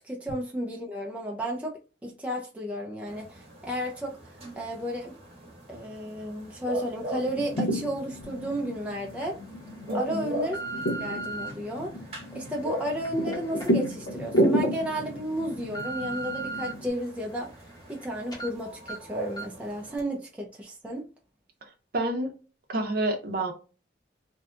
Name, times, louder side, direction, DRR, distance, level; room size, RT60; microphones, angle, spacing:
voice 1, 0.0-4.2 4.6-5.1 5.7-9.4 9.9-10.6 11.0-12.0 12.3-17.5 17.9-21.1, equal, 5° right, 0.4 m, -33 dB
sound 1, 3.1-20.0, equal, 35° right, 0.9 m, -41 dB
sound 2, 7.1-16.9, equal, 85° left, 0.6 m, -31 dB
sound 3, 8.2-8.3 8.9-9.2 9.9-11.5 12.2-14.5 14.9-15.0 15.4-16.7 17.2-18.0 18.3-18.5 18.9-19.0 19.4-19.6 20.0-20.1, right 3 dB, 20° left, 0.8 m, -38 dB
voice 2, 9.9-10.3 21.6-22.3 22.7-23.5, right 2 dB, 55° right, 0.6 m, -29 dB
2.6 x 2.2 x 2.4 m
head